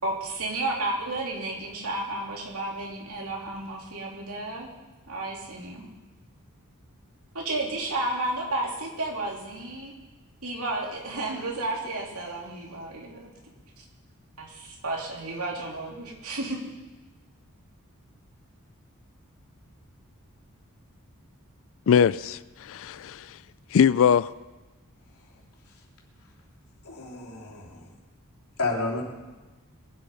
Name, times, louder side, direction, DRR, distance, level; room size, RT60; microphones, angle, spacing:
voice 1, 0.0-4.7 5.1-5.9 7.3-9.9 10.4-13.3 13.8-13.9 14.4-16.6, right 2 dB, 75° right, -1 dB, 3.3 m, -32 dB
voice 2, 21.9-23.3 23.7-24.3, left 7 dB, 65° left, 19 dB, 0.4 m, -21 dB
voice 3, 26.8-27.9 28.6-29.0, left 3 dB, 90° left, -2 dB, 3.2 m, -31 dB
21.5 x 8.4 x 5.6 m, 1.2 s
head